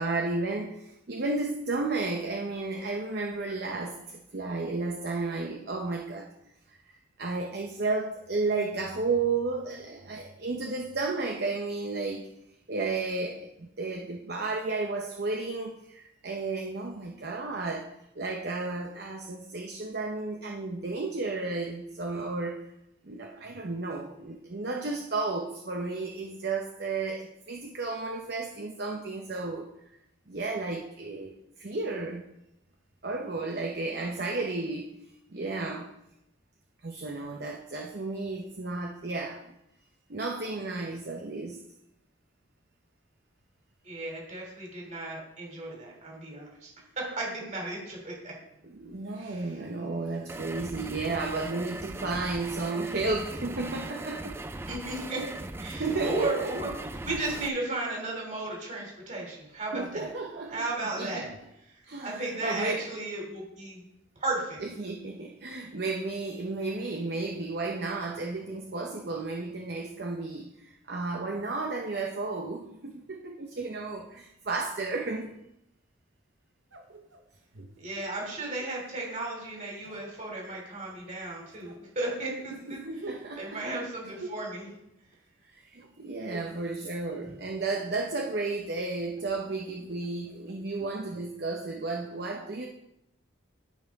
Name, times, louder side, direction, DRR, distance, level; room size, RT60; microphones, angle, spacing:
voice 1, 0.0-6.3 6.7-6.8 7.2-12.3 12.7-17.9 18.2-22.6 23.0-29.7 30.3-31.3 31.6-32.2 33.0-34.9 35.3-35.9 36.8-39.4 40.1-41.6 48.6-54.4 55.0-55.1 55.8-56.5 59.7-61.4 61.8-62.9 64.6-75.5 82.5-83.8 85.5-92.7, right 3 dB, 50° right, 1 dB, 0.8 m, -33 dB
voice 2, 33.8-34.4 43.8-46.7 47.0-48.3 49.1-49.6 54.7-55.3 55.6-56.7 57.0-60.1 60.5-61.3 61.7-63.8 64.2-64.6 77.8-82.8 83.4-84.7, right 2 dB, 35° right, -1 dB, 2.8 m, -35 dB
sound 1, 50.3-57.5, right 2 dB, 10° right, 0.3 m, -39 dB
sound 2, 76.7-78.9 79.6-80.4 81.5-85.5 85.8-86.7 86.9-87.8 88.2-91.4, right 2 dB, 75° right, 1.0 m, -48 dB
13.0 x 5.6 x 3.6 m, 0.83 s
head